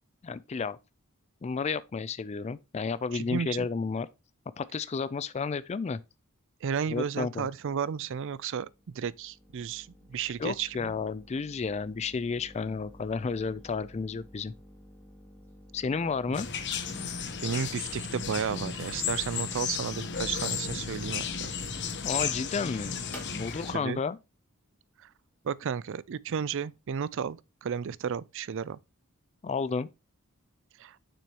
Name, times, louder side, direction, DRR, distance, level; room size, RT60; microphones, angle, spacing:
voice 1, 0.2-0.8 1.4-4.1 4.6-6.0 6.9-7.5 10.2-14.5 15.7-16.5 22.0-22.9 23.3-24.2 29.4-29.9, left 5 dB, 30° left, 0.3 m, -32 dB
voice 2, 3.1-3.7 6.6-10.9 17.4-21.5 23.7-24.0 25.4-28.8 30.8-31.0, right 7 dB, 60° right, 0.4 m, -33 dB
sound 1, 8.1-25.7, equal, 10° left, 2.1 m, -53 dB
sound 2, 16.3-23.7, left 6 dB, 55° left, 1.0 m, -34 dB
6.9 x 6.1 x 2.9 m
head